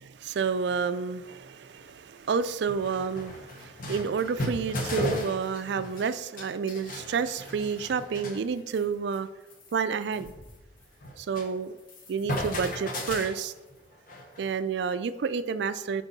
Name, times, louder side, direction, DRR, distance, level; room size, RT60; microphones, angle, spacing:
voice 1, 0.1-9.3 9.7-10.3 11.2-11.8 12.1-13.5 14.4-16.0, right 6 dB, 60° right, 13 dB, 0.4 m, -30 dB
sound 1, 1.7-1.8 2.3-2.4 2.7-6.1 6.4-8.4 8.7-8.9 9.1-9.2 9.5-11.5 11.8-14.5, left 1 dB, 45° left, 1.1 m, -36 dB
8.0 x 4.5 x 4.1 m, 1.1 s
head